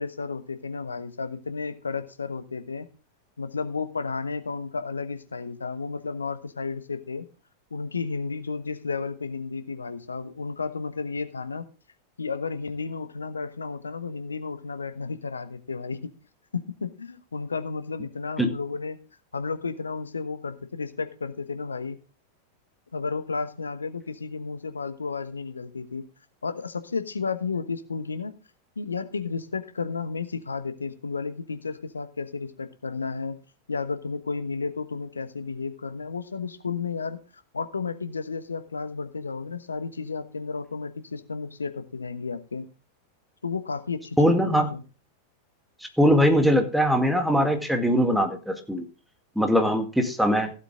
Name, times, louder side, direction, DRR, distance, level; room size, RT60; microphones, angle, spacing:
voice 1, 0.0-2.9 3.4-7.3 7.7-11.7 12.2-16.1 16.5-19.0 19.3-22.0 22.9-26.1 26.4-28.3 28.8-33.4 33.7-37.2 37.5-42.7 43.4-44.8, left 4 dB, 75° left, 11 dB, 1.1 m, -32 dB
voice 2, 44.2-44.7 46.0-48.9 49.4-50.5, equal, ahead, 5 dB, 1.9 m, -21 dB
15.5 x 8.1 x 3.6 m, 0.33 s
figure-of-eight pair, 90°, 0 cm